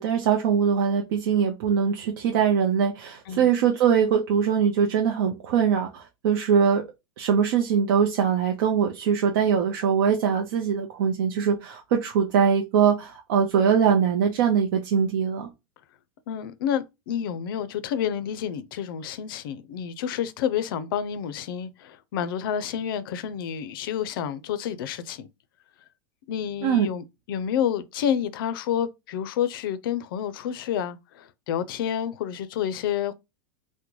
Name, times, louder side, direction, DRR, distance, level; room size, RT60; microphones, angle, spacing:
voice 1, 0.0-6.8 7.2-15.5 26.6-26.9, right 7 dB, 60° right, 0.6 m, -22 dB
voice 2, 16.3-25.3 26.3-33.1, left 9 dB, 65° left, 0.4 m, -29 dB
3.7 x 2.1 x 3.0 m
supercardioid pair, 155°, 13 cm